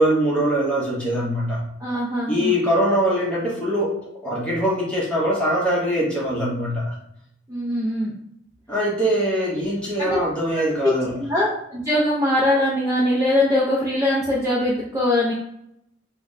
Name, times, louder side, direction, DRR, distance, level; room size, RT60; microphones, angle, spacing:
voice 1, 0.0-1.6 2.3-7.0 8.7-11.1, equal, 5° left, -5 dB, 0.8 m, -22 dB
voice 2, 1.8-2.5 7.5-8.1 10.0-10.3 10.5-10.9 11.2-15.3, left 1 dB, 15° right, -5 dB, 0.4 m, -22 dB
3.3 x 2.1 x 3.9 m, 0.75 s
head